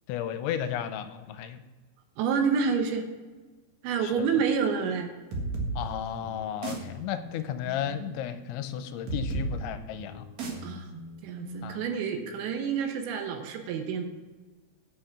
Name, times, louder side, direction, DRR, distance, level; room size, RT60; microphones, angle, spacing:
voice 1, 0.1-1.6 4.0-4.1 5.8-10.3 11.6-11.8, left 10 dB, 85° left, 10 dB, 2.9 m, -34 dB
voice 2, 2.2-3.1 3.8-5.1 10.6-10.8 11.2-14.0, right 6 dB, 80° right, 5 dB, 3.2 m, -28 dB
sound 1, 5.3-12.7, right 2 dB, 55° right, 2.1 m, -37 dB
8.5 x 7.9 x 5.9 m, 1.3 s
omnidirectional pair, 5.4 m